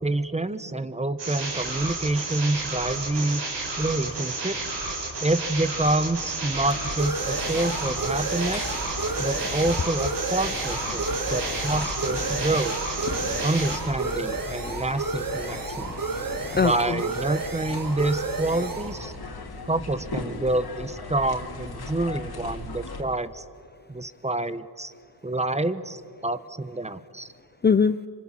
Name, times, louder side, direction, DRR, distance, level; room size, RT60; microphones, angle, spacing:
voice 1, 0.0-3.4 3.8-4.6 5.2-8.7 9.2-12.8 13.4-15.9 16.5-19.1 19.7-23.4 23.9-24.9 25.2-27.3, right 2 dB, 15° right, 13 dB, 1.2 m, -27 dB
sound 1, 1.2-13.8, right 3 dB, 80° right, 5.8 m, -32 dB
sound 2, 5.1-20.5, right 4 dB, 50° right, 1.9 m, -33 dB
sound 3, 6.5-23.0, left 3 dB, 60° left, 3.3 m, -38 dB
voice 2, 9.0-9.5 10.9-11.6 12.2-12.3 13.0-13.8 14.0-14.8 15.3-17.0 27.6-28.0, left 5 dB, 25° left, 13 dB, 0.5 m, -28 dB
27.0 x 25.0 x 7.5 m, 2.5 s
cardioid pair, 85°, 42 cm